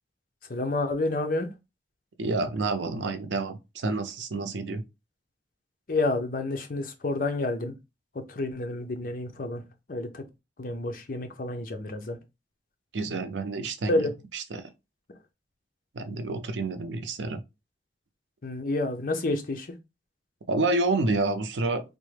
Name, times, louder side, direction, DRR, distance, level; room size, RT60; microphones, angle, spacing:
voice 1, 0.5-1.5 5.9-7.7 8.2-9.6 9.9-10.2 10.6-12.2 13.9-14.1 18.4-19.7, left 2 dB, 50° left, 0.6 m, -29 dB
voice 2, 2.2-4.8 12.9-14.6 15.9-17.4 20.5-22.0, right 3 dB, 90° right, 0.5 m, -29 dB
3.5 x 2.1 x 3.2 m
head